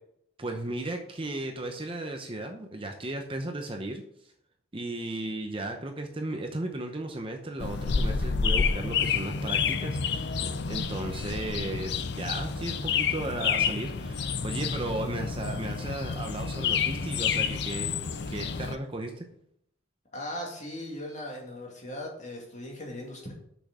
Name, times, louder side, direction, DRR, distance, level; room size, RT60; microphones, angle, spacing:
voice 1, 0.4-4.0 4.7-17.9 18.3-19.3, right 2 dB, 25° right, 4 dB, 0.8 m, -35 dB
sound 1, 7.6-18.8, left 5 dB, 55° left, 0.5 m, -29 dB
voice 2, 20.1-23.3, left 1 dB, 35° left, -1 dB, 2.4 m, -38 dB
6.5 x 6.3 x 6.1 m, 0.72 s
head